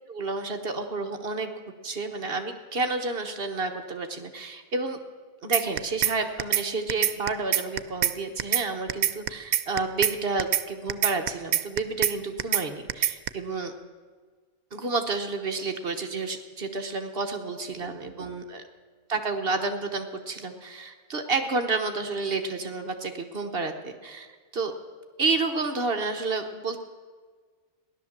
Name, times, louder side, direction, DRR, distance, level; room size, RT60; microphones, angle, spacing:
voice 1, 0.1-1.5 1.8-5.0 5.4-13.7 14.7-18.6 19.1-24.3 24.5-24.7 25.2-26.8, right 3 dB, 45° right, 5 dB, 1.2 m, -30 dB
sound 1, 5.5-6.1 6.4-6.6 6.9-8.1 8.4-8.6 8.9-10.1 10.4-10.6 10.9-12.1 12.4-12.6 12.9-13.3, right 12 dB, 80° right, 1.0 m, -23 dB
16.0 x 11.0 x 7.2 m, 1.5 s
omnidirectional pair, 1.4 m